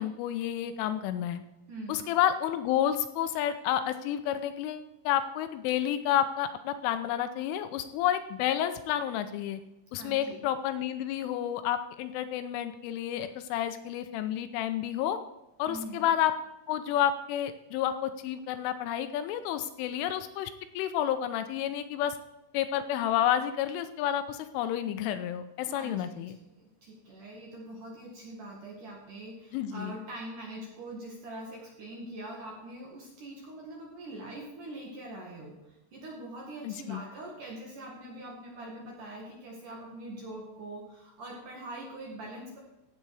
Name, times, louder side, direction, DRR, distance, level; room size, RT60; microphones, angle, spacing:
voice 1, 0.0-1.4 1.9-9.6 9.9-15.2 15.6-16.3 16.7-22.2 22.5-26.4 29.5-29.9 36.6-37.0, left 10 dB, 80° left, 10 dB, 3.0 m, -30 dB
voice 2, 1.7-2.0 9.9-10.5 15.6-16.1 25.6-42.6, right 1 dB, 55° right, -1 dB, 2.5 m, -43 dB
15.5 x 8.0 x 4.8 m, 0.93 s
omnidirectional pair, 5.9 m